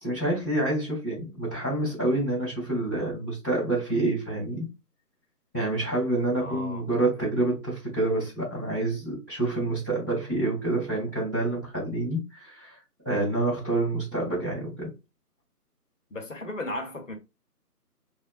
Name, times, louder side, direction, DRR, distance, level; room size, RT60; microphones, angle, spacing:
voice 1, 0.0-4.7 5.5-12.8 13.0-14.9, right 2 dB, 10° right, 1.1 m, -27 dB
voice 2, 6.3-6.8 16.1-17.1, left 1 dB, 50° left, 0.7 m, -35 dB
2.9 x 2.1 x 2.4 m
figure-of-eight pair, 170°, 48 cm